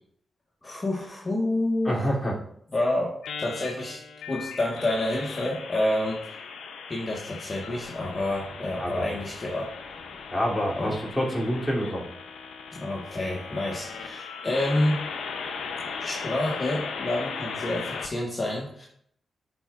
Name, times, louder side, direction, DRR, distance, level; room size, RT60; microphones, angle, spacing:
voice 1, 0.6-2.1 2.7-4.0 4.3-6.4 6.9-9.7 10.8-11.0 12.7-15.0 16.0-18.9, left 1 dB, 40° left, -2 dB, 1.4 m, -28 dB
voice 2, 1.8-2.3 8.8-9.1 10.3-12.0, equal, 10° left, -3 dB, 2.9 m, -27 dB
sound 1, 3.2-18.1, left 5 dB, 80° left, 0.6 m, -38 dB
11.0 x 4.7 x 2.5 m, 0.68 s
supercardioid pair, 45°, 0 cm